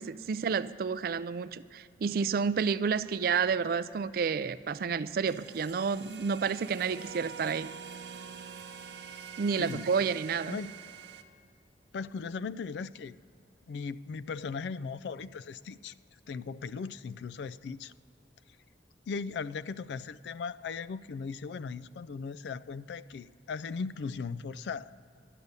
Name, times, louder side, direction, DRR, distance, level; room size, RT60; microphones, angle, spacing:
voice 1, 0.0-7.7 9.4-10.6, right 6 dB, 55° right, 14 dB, 0.4 m, -30 dB
sound 1, 5.3-11.2, right 6 dB, 75° right, 0.7 m, -45 dB
voice 2, 9.6-9.9 10.5-10.7 11.9-13.2 13.7-15.9 16.3-17.9 19.1-24.9, left 5 dB, 75° left, 17 dB, 0.3 m, -38 dB
11.5 x 6.7 x 9.5 m, 2.4 s
head